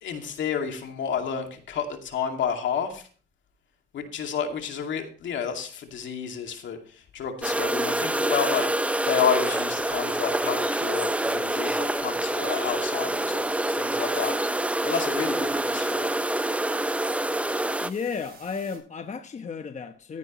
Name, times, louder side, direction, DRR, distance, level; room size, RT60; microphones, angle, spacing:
voice 1, 0.0-3.1 3.9-14.4 14.8-16.1, left 7 dB, 70° left, 2.4 m, -30 dB
sound 1, 7.4-17.9, right 1 dB, 5° right, 0.5 m, -26 dB
sound 2, 8.9-18.8, right 5 dB, 50° right, 4.6 m, -51 dB
voice 2, 17.8-20.2, left 5 dB, 35° left, 1.0 m, -33 dB
15.0 x 9.7 x 3.1 m
cardioid pair, 90°, 20 cm